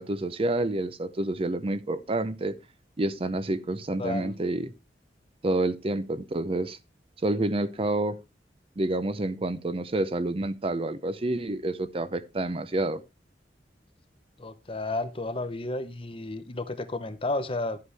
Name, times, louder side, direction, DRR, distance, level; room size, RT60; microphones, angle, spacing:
voice 1, 0.0-2.6 3.0-4.7 5.4-6.8 7.2-8.2 8.8-13.0, right 2 dB, 30° right, 0.6 m, -28 dB
voice 2, 4.0-4.4 14.4-17.8, left 2 dB, 30° left, 0.8 m, -32 dB
11.5 x 8.2 x 3.4 m
head